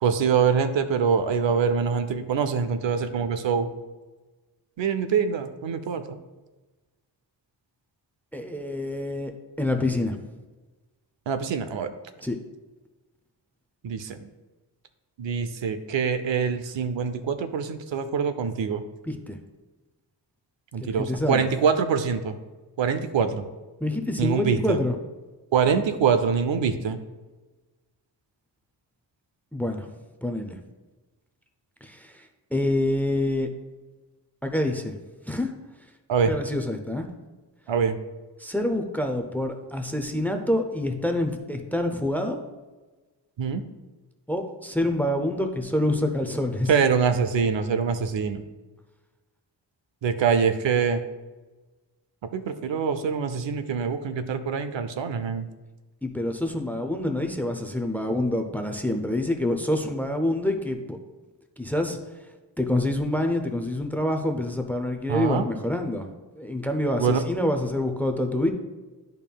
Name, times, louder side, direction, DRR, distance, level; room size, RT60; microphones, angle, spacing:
voice 1, 0.0-3.7 4.8-6.2 11.3-11.9 13.8-14.3 15.2-18.8 20.7-22.4 22.8-23.4 24.2-24.8 25.5-27.0 36.1-36.3 37.7-38.0 43.4-43.6 46.7-48.4 50.0-51.0 52.3-55.5 65.1-65.5 67.0-67.2, right 6 dB, 90° right, 10 dB, 0.6 m, -24 dB
voice 2, 8.3-9.3 9.6-10.2 12.2-12.4 19.1-19.4 20.8-21.4 23.8-24.9 29.5-29.9 30.2-30.6 31.8-33.5 34.4-35.0 35.3-35.5 36.2-37.1 38.4-42.4 44.3-46.7 56.0-61.0 61.6-62.0 62.6-68.5, left 1 dB, 5° left, 5 dB, 0.5 m, -27 dB
11.0 x 5.3 x 2.3 m, 1.2 s
wide cardioid pair, 145°, 43 cm